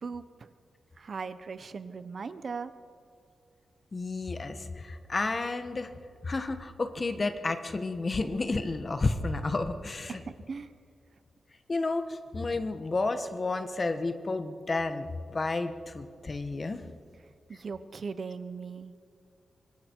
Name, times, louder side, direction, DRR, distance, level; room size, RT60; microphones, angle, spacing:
voice 1, 0.0-0.5 1.0-2.7 10.1-10.7 17.5-18.9, right 5 dB, 45° right, 12 dB, 0.9 m, -39 dB
voice 2, 3.9-5.9 6.2-10.2 11.7-16.8, left 3 dB, 30° left, 8 dB, 1.3 m, -31 dB
26.0 x 24.0 x 4.6 m, 2.2 s
wide cardioid pair, 150°, 0 cm